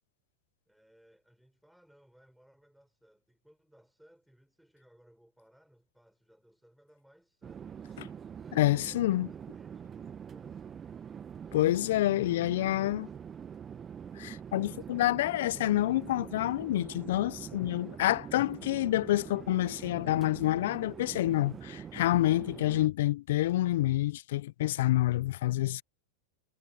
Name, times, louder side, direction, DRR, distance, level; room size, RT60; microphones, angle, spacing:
voice 1, 0.7-7.7 8.4-10.9 12.0-13.1, equal, ahead, 7.0 m, -63 dB
Chatter / Fixed-wing aircraft airplane, 7.4-22.9, right 8 dB, 25° right, 1.3 m, -44 dB
voice 2, 8.5-9.3 11.5-13.1 14.2-25.8, left 15 dB, 65° left, 0.6 m, -28 dB
hypercardioid pair, 100°, 0 cm